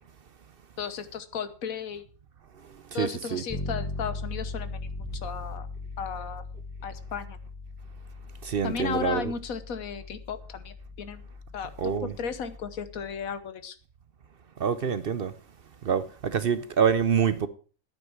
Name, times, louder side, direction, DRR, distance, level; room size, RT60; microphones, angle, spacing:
voice 1, 0.8-2.1 2.9-4.9 5.2-5.7 6.0-6.4 6.8-7.4 8.6-11.2 11.5-11.7 12.0-13.8, left 6 dB, 80° left, 1.5 m, -35 dB
voice 2, 2.9-3.4 8.4-9.3 11.8-12.1 14.6-15.3 15.8-17.5, right 7 dB, 50° right, 0.7 m, -26 dB
Bass guitar, 3.5-13.2, left 2 dB, 10° left, 1.1 m, -39 dB
11.0 x 9.1 x 5.9 m
omnidirectional pair, 1.4 m